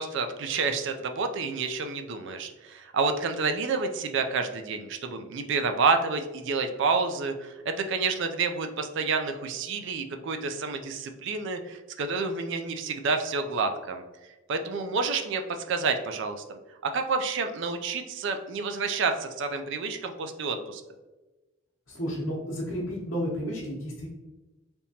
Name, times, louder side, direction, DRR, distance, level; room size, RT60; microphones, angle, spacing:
voice 1, 0.0-20.8, right 4 dB, 60° right, 7 dB, 0.4 m, -29 dB
voice 2, 21.9-24.1, equal, 70° left, -7 dB, 0.9 m, -32 dB
3.5 x 2.8 x 2.7 m, 1.1 s
head